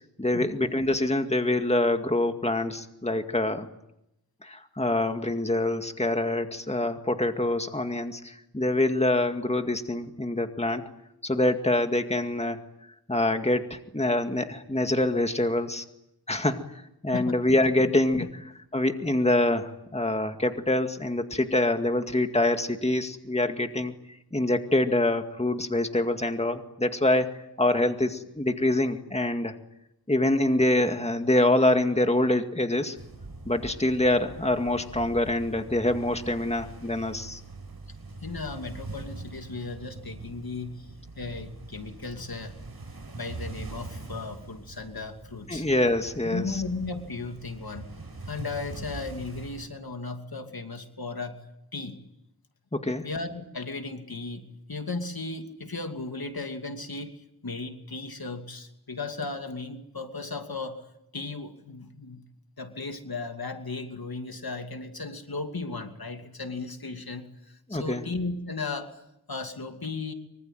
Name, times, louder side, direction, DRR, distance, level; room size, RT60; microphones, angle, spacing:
voice 1, 0.2-3.7 4.4-10.8 11.2-12.6 13.1-15.8 16.3-16.6 17.0-18.3 18.7-23.9 24.3-27.3 27.6-29.5 30.1-33.0 33.5-37.4 45.5-46.6 52.7-53.1 67.7-68.0, left 1 dB, 15° left, 6 dB, 2.1 m, -25 dB
sound 1, 32.9-49.7, right 2 dB, 70° right, 5.8 m, -43 dB
voice 2, 38.2-40.9 41.2-42.6 43.1-45.7 46.2-47.9 48.3-51.4 51.7-52.0 53.0-60.9 61.1-62.2 62.6-69.0 69.3-70.1, left 3 dB, 70° left, 6 dB, 2.7 m, -36 dB
25.0 x 24.5 x 9.3 m, 0.83 s
wide cardioid pair, 65°, 38 cm